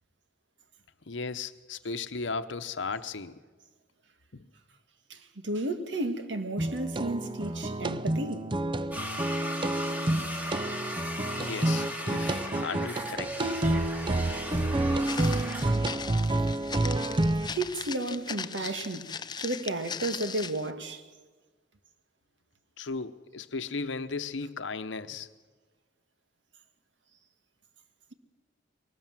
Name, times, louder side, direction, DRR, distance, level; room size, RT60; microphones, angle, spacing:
voice 1, 1.1-3.4 4.3-4.5 9.9-10.0 11.4-13.6 22.8-25.3, left 4 dB, 75° left, 0.9 m, -36 dB
voice 2, 5.1-8.5 17.5-21.0, right 2 dB, 70° right, 1.7 m, -33 dB
sound 1, 6.6-17.5, right 1 dB, 25° right, 0.6 m, -29 dB
sound 2, 8.9-15.7, left 1 dB, 10° right, 2.5 m, -37 dB
Walk footsteps, 15.0-20.7, left 6 dB, 25° left, 0.6 m, -39 dB
22.0 x 18.5 x 7.5 m
head